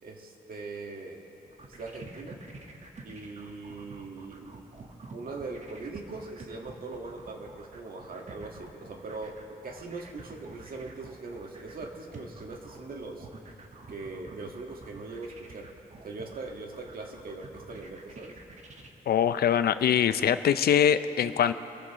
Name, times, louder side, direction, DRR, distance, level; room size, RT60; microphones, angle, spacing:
voice 1, 0.0-1.2 1.8-2.4 3.0-4.6 5.1-13.3 13.9-15.7 16.0-18.4, right 3 dB, 65° right, 2 dB, 1.7 m, -41 dB
sound 1, 1.5-18.9, right 3 dB, 45° right, 1.5 m, -48 dB
voice 2, 19.1-21.5, left 9 dB, 80° left, 12 dB, 0.5 m, -23 dB
26.0 x 14.0 x 3.0 m, 2.9 s
cardioid pair, 70°, 16 cm